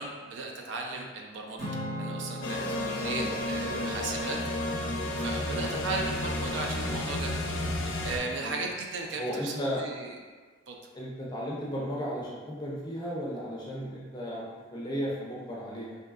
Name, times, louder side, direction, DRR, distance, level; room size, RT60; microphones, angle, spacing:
voice 1, 0.0-1.7 2.0-4.4 5.1-7.3 8.0-10.2 10.7-10.8, right 3 dB, 70° right, 1 dB, 0.3 m, -36 dB
Acoustic guitar / Strum, 1.6-6.0, right 1 dB, 40° right, 0.9 m, -41 dB
sound 1, 2.4-8.2, left 1 dB, 85° left, 0.4 m, -32 dB
voice 2, 3.0-3.3 3.6-4.0 5.5-5.8 8.4-8.7 9.2-9.8 10.9-16.0, equal, 20° left, -5 dB, 0.5 m, -35 dB
2.6 x 2.3 x 2.3 m, 1.5 s
head